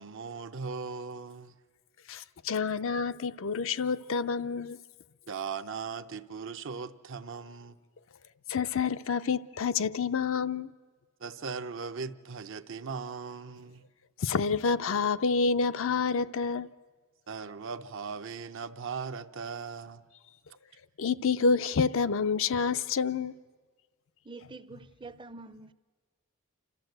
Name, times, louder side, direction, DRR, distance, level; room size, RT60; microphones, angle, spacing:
voice 1, 0.0-1.6 5.3-7.8 11.2-13.8 17.3-20.0, right 5 dB, 60° right, 0.7 m, -38 dB
voice 2, 2.1-4.8 8.5-10.7 14.2-16.7 21.0-23.3, left 5 dB, 65° left, 0.5 m, -28 dB
voice 3, 24.2-25.7, right 3 dB, 20° right, 0.6 m, -46 dB
29.0 x 13.5 x 7.9 m
head